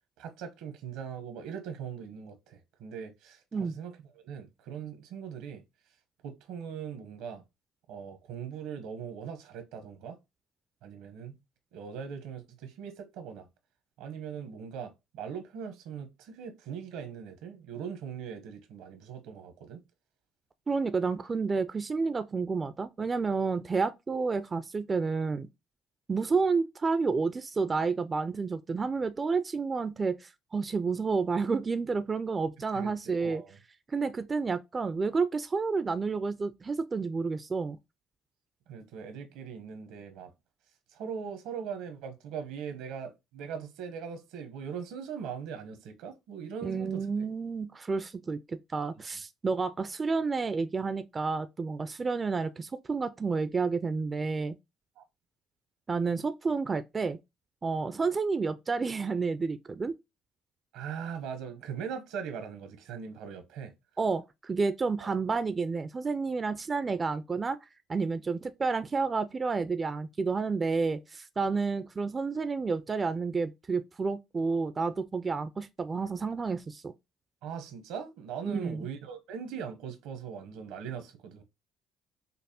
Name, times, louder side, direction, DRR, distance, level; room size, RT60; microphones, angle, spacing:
voice 1, 0.2-5.6 6.2-7.4 7.9-10.2 10.8-11.4 11.7-13.4 14.0-19.8 32.7-32.9 33.2-33.6 38.7-40.3 40.9-47.3 55.0-55.1 60.7-63.7 65.0-65.1 77.4-81.4, right 7 dB, 80° right, 0.8 m, -40 dB
voice 2, 20.7-25.5 26.1-33.4 33.9-37.8 46.6-54.5 55.9-57.2 57.6-59.9 64.0-67.6 67.9-76.9 78.5-78.9, right 4 dB, 30° right, 0.3 m, -30 dB
5.3 x 2.1 x 2.7 m
supercardioid pair, 75°, 0 cm